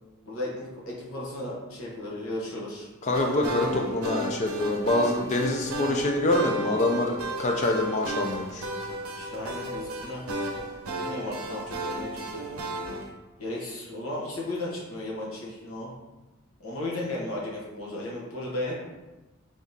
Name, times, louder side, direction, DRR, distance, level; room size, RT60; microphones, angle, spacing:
voice 1, 0.2-2.9 9.1-10.2 10.9-12.6 13.4-15.9 16.6-18.7, left 1 dB, 70° left, -4 dB, 0.9 m, -35 dB
voice 2, 3.0-8.7, left 1 dB, 35° left, 1 dB, 0.3 m, -25 dB
sound 1, 3.1-13.1, right 1 dB, 85° right, 0.6 m, -34 dB
3.6 x 3.5 x 2.6 m, 1.1 s
head